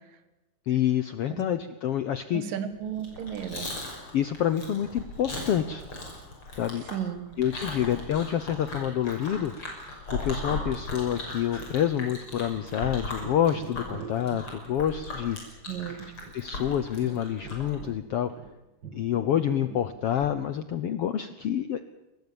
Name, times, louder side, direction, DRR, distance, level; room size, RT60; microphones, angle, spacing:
voice 1, 0.7-2.4 4.1-5.8 6.5-6.8 7.4-9.5 10.1-15.4 16.3-18.3 18.9-21.8, left 10 dB, 75° left, 12 dB, 1.4 m, -27 dB
voice 2, 2.3-3.8 6.9-7.2 15.7-16.0, right 9 dB, 85° right, 11 dB, 3.5 m, -34 dB
Chewing mastication, 2.9-17.7, left 2 dB, 40° left, 7.0 m, -37 dB
sound 1, 11.6-11.8 12.1-12.9 13.2-14.5 14.8-14.9 15.3-15.4 15.8-15.9 16.2-18.6 18.8-20.4, right 5 dB, 40° right, 2.2 m, -45 dB
23.5 x 20.5 x 7.0 m, 1.0 s
omnidirectional pair, 3.8 m